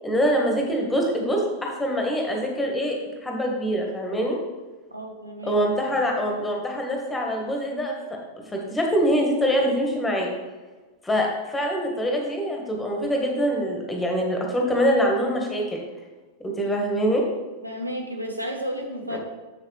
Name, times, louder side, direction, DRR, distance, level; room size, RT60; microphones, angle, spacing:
voice 1, 0.0-3.0 3.2-4.4 5.4-8.0 8.5-10.3 11.0-15.8 16.4-17.2 19.1-19.2, equal, 10° left, 0 dB, 1.5 m, -24 dB
voice 2, 4.9-5.6 17.6-19.2, equal, 85° right, 2 dB, 0.9 m, -32 dB
6.8 x 6.4 x 3.3 m, 1.3 s
figure-of-eight pair, 90°, 0 cm